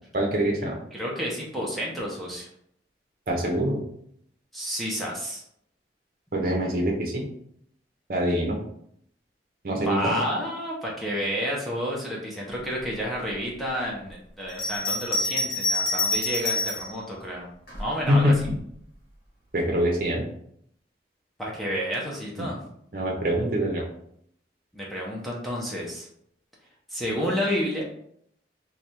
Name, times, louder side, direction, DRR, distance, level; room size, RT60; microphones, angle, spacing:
voice 1, 0.1-0.8 3.3-3.8 6.3-7.3 8.1-8.6 9.6-10.2 18.1-18.5 19.5-20.2 22.4-22.5 22.9-23.8, equal, 50° right, -1 dB, 0.7 m, -24 dB
voice 2, 0.9-2.5 4.5-5.4 9.9-17.5 17.8-18.3 21.4-22.6 24.7-26.1 26.9-27.8, equal, ahead, -4 dB, 0.7 m, -30 dB
Bell, 14.5-16.9 17.7-18.6, left 2 dB, 55° left, 1.3 m, -27 dB
3.2 x 2.3 x 4.2 m, 0.69 s
head